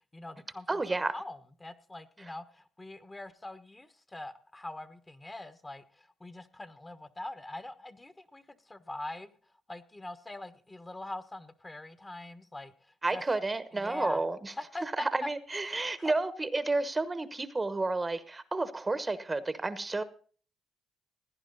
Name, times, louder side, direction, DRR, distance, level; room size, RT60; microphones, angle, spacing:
voice 1, 0.1-9.3 9.7-12.7 13.1-13.2 13.7-14.2 14.6-15.3 15.7-16.1, left 2 dB, 20° left, 1.2 m, -42 dB
voice 2, 0.7-1.1 2.2-2.3 13.0-14.5 14.8-20.0, right 3 dB, 20° right, 1.1 m, -31 dB
17.0 x 10.0 x 4.0 m
cardioid pair, 90°, 0 cm